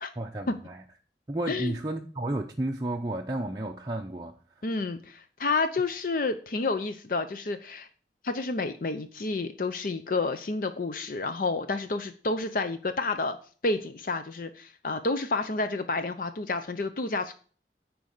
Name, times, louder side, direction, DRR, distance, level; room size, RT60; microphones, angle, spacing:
voice 1, 0.2-0.8 1.3-4.4, right 1 dB, 20° right, 0.6 m, -32 dB
voice 2, 4.6-7.9 8.2-13.4 13.6-17.3, left 3 dB, 50° left, 0.5 m, -30 dB
9.3 x 4.7 x 6.5 m
head